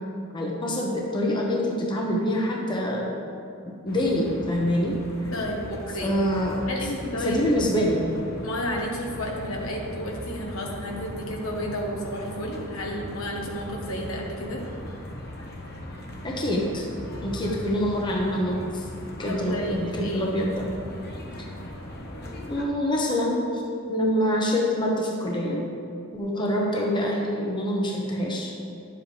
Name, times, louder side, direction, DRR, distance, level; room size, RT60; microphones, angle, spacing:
voice 1, 0.3-3.1 3.7-5.0 6.0-6.6 7.2-8.2 16.2-16.9 17.2-18.9 19.2-20.7 22.5-23.6 23.9-25.7 26.1-28.5, equal, 20° left, -2 dB, 1.0 m, -25 dB
sound 1, 3.9-22.7, left 1 dB, 50° left, 1.1 m, -38 dB
voice 2, 5.3-6.1 6.7-7.4 8.4-14.6 19.2-20.3 26.3-26.5 26.7-26.9, equal, 80° left, 0 dB, 1.4 m, -32 dB
11.0 x 7.7 x 3.4 m, 2.5 s
head